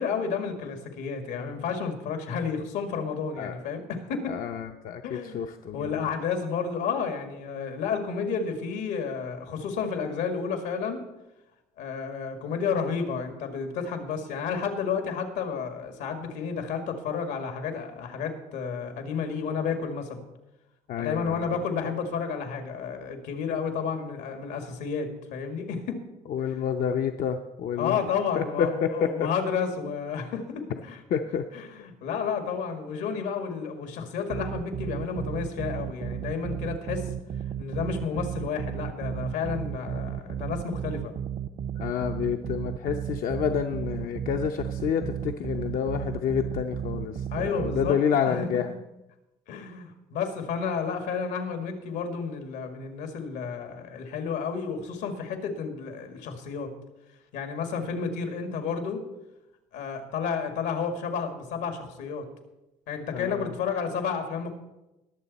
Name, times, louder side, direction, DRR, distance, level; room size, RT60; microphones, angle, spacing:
voice 1, 0.0-4.4 5.0-5.4 5.7-11.0 11.8-20.2 21.0-26.0 27.8-31.0 31.5-37.1 37.6-41.1 47.3-48.0 48.3-48.8 49.5-56.7 57.3-59.0 59.7-62.2 62.9-64.5, left 6 dB, 85° left, 6 dB, 2.0 m, -31 dB
voice 2, 4.3-6.1 20.9-21.6 26.3-28.0 28.3-28.9 31.1-31.4 41.8-48.7 63.1-63.5, left 8 dB, 55° left, 5 dB, 0.7 m, -29 dB
sound 1, 34.3-47.9, right 9 dB, 40° right, 0.6 m, -34 dB
20.5 x 7.1 x 4.1 m, 0.98 s
cardioid pair, 110°, 17 cm